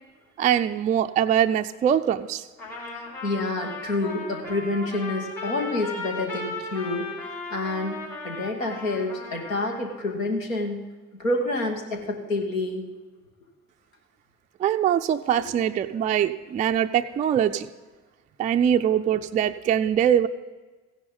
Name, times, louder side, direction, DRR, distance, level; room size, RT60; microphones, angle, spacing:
voice 1, 0.4-2.4 14.6-17.7 18.4-20.3, right 9 dB, 20° right, 7 dB, 0.3 m, -22 dB
Trumpet, 2.6-10.0, left 3 dB, 60° left, 3.6 m, -36 dB
voice 2, 3.2-7.1 7.5-10.8 11.2-12.9 15.4-15.5, left 2 dB, 80° left, 3 dB, 1.3 m, -28 dB
15.5 x 10.5 x 3.9 m, 1.3 s
figure-of-eight pair, 50°, 40 cm